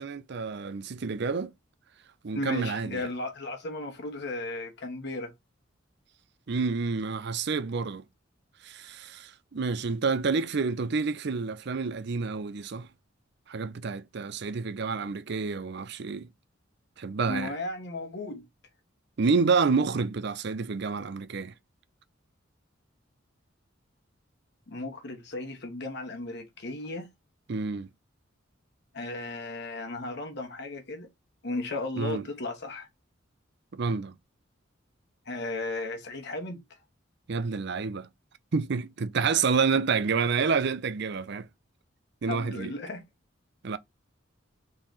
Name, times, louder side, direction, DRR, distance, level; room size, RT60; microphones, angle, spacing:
voice 1, 0.0-1.5 2.2-3.1 6.5-8.0 8.6-12.9 13.5-16.3 17.0-17.5 19.2-21.5 27.5-27.9 32.0-32.2 33.7-34.1 37.3-38.1 38.5-41.5 42.2-42.7 43.6-43.8, right 5 dB, 60° right, 0.5 m, -28 dB
voice 2, 2.3-5.3 17.3-18.4 24.7-27.1 28.9-31.1 31.4-32.9 35.2-36.6 42.3-43.0, left 2 dB, 60° left, 1.2 m, -35 dB
3.8 x 3.2 x 4.1 m
head